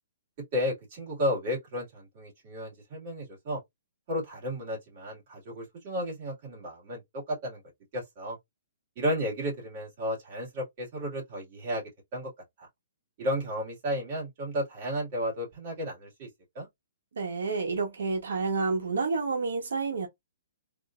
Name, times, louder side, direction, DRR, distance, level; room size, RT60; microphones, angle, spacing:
voice 1, 0.5-3.6 4.1-7.6 7.9-8.4 9.0-11.8 12.1-12.3 13.2-16.3 16.5-16.7, equal, 35° right, 2.1 m, -33 dB
voice 2, 17.2-20.1, right 4 dB, 85° right, 1.0 m, -29 dB
3.4 x 2.5 x 2.4 m
hypercardioid pair, 165°, 0 cm